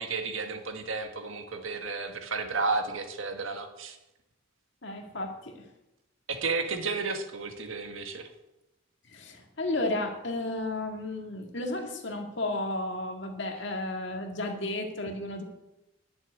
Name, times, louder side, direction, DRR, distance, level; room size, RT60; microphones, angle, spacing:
voice 1, 0.0-3.9 6.3-8.3, right 4 dB, 75° right, 6 dB, 1.7 m, -32 dB
voice 2, 4.8-5.7 9.1-15.4, left 2 dB, 55° left, 4 dB, 2.0 m, -33 dB
11.0 x 7.0 x 9.6 m, 0.94 s
head